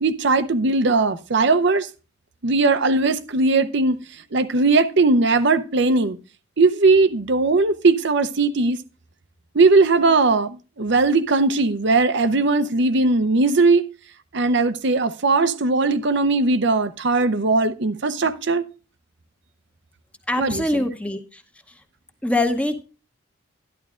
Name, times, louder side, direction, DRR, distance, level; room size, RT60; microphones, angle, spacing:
voice 1, 0.0-1.9 2.4-4.0 4.3-6.2 6.6-8.8 9.5-13.8 14.3-18.7 20.4-20.9, right 3 dB, 60° right, 0.7 m, -19 dB
voice 2, 20.3-21.2 22.2-22.8, left 1 dB, 5° left, 0.9 m, -23 dB
12.5 x 11.0 x 2.5 m
head